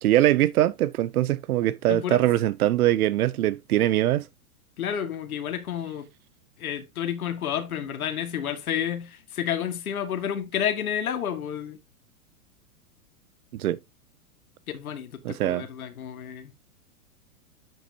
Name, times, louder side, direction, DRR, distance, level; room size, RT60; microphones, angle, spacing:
voice 1, 0.0-4.3 13.5-13.8 15.2-15.6, right 13 dB, 80° right, 0.6 m, -22 dB
voice 2, 4.8-6.1 6.6-11.8 14.7-16.7, left 9 dB, 75° left, 1.9 m, -30 dB
10.0 x 6.1 x 2.7 m
hypercardioid pair, 120°, 43 cm